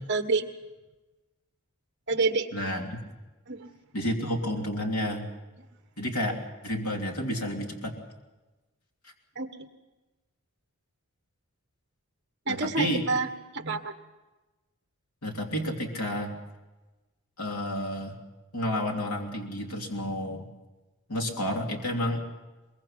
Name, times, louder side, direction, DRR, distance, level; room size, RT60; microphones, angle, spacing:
voice 1, 0.1-0.4 2.1-2.5 3.5-3.7 9.3-9.5 12.5-13.3 13.5-13.9, right 3 dB, 50° right, 8 dB, 1.4 m, -27 dB
voice 2, 2.5-3.0 3.9-5.3 6.0-6.4 6.6-8.0 12.5-13.0 15.2-16.4 17.4-18.2 18.5-20.5 21.1-22.2, equal, 85° left, 1 dB, 3.0 m, -30 dB
23.0 x 22.0 x 5.8 m, 1.1 s
head